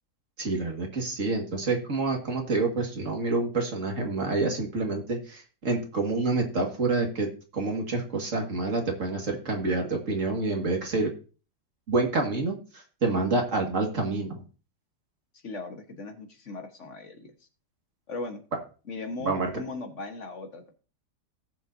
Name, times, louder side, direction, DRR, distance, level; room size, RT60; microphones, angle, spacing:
voice 1, 0.4-11.1 11.9-14.4 19.2-19.5, right 3 dB, 50° right, 2 dB, 2.2 m, -28 dB
voice 2, 15.4-17.3 18.1-18.4 18.9-20.7, left 3 dB, 45° left, 5 dB, 1.6 m, -38 dB
17.5 x 7.3 x 2.7 m, 0.35 s
omnidirectional pair, 1.8 m